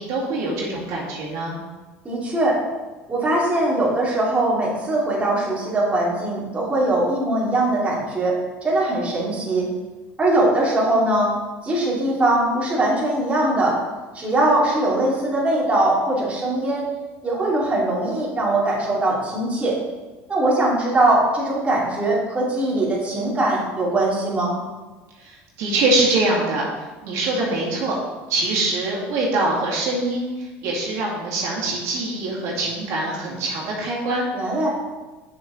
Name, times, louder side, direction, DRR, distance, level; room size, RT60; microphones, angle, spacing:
voice 1, 0.0-1.6 25.2-28.0 28.3-34.5, right 2 dB, 65° right, -4 dB, 2.4 m, -24 dB
voice 2, 2.0-2.6 3.1-9.7 10.2-11.3 11.6-13.8 14.1-16.9 17.2-19.8 20.3-24.5 34.3-34.7, right 1 dB, 20° right, -6 dB, 2.6 m, -21 dB
6.8 x 6.3 x 3.9 m, 1.2 s
supercardioid pair, 95°, 6 cm